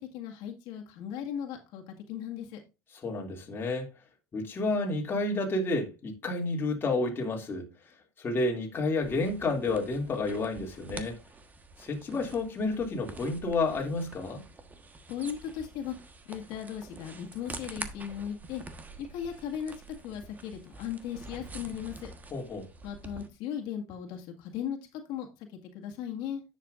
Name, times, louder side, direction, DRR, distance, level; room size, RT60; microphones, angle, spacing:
voice 1, 0.0-2.6 15.1-15.9 16.3-18.6 19.0-22.1 22.8-26.4, left 9 dB, 70° left, 1.9 m, -37 dB
voice 2, 3.0-3.9 4.3-7.7 8.2-11.2 11.8-14.4 22.3-22.7, left 2 dB, 30° left, 2.6 m, -30 dB
sound 1, 9.0-23.3, right 3 dB, 20° right, 1.3 m, -46 dB
10.0 x 7.4 x 2.5 m
cardioid pair, 125°, 8 cm